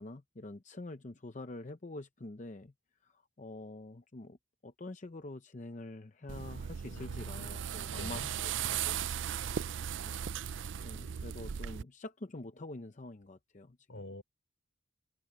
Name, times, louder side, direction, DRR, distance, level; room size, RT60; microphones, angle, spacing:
voice 1, 0.0-2.7 3.0-4.4 4.6-9.0 10.1-10.2 10.8-14.0, left 2 dB, 35° left, 0.7 m, -46 dB
sound 1, 6.3-11.8, right 8 dB, 70° right, 0.4 m, -37 dB
voice 2, 6.8-7.5 7.9-8.3 13.9-14.2, left 1 dB, 75° left, 4.4 m, -46 dB
head